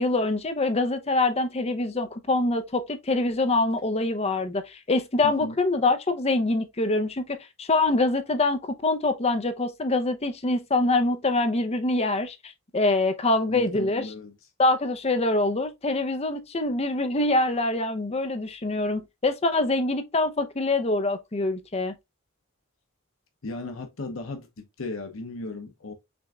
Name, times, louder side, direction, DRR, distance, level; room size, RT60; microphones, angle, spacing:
voice 1, 0.0-14.0 14.6-22.0, left 2 dB, 30° left, 0.6 m, -25 dB
voice 2, 5.2-5.6 13.5-14.3 23.4-25.9, left 2 dB, 70° left, 0.8 m, -36 dB
6.1 x 3.4 x 2.4 m
head